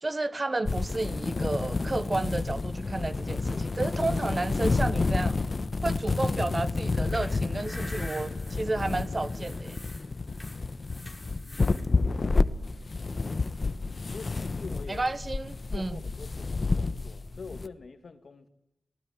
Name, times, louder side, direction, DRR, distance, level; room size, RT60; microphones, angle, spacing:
voice 1, 0.0-5.4 5.8-9.8 14.9-16.0, right 2 dB, 35° right, 1.1 m, -31 dB
sound 1, 0.6-17.7, left 3 dB, 45° left, 1.1 m, -30 dB
sound 2, 6.9-11.9, left 1 dB, 5° left, 6.5 m, -46 dB
voice 2, 11.4-13.3 14.1-15.1 15.7-18.5, left 4 dB, 60° left, 2.2 m, -45 dB
18.5 x 18.5 x 9.4 m
cardioid pair, 65°, 0 cm